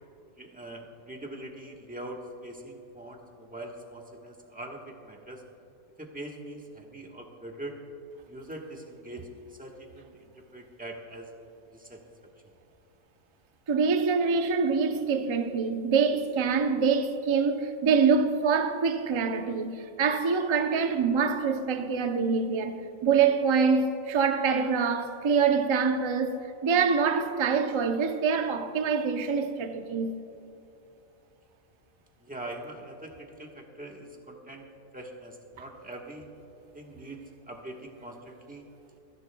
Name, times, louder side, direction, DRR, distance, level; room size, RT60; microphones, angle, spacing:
voice 1, 0.4-5.4 6.0-7.8 8.3-11.3 11.7-12.0 32.2-34.7 34.9-36.3 36.7-38.6, right 1 dB, 5° right, 1.1 m, -43 dB
voice 2, 13.7-26.4 26.6-30.2, right 5 dB, 35° right, 0.5 m, -25 dB
28.0 x 10.5 x 2.3 m
omnidirectional pair, 1.5 m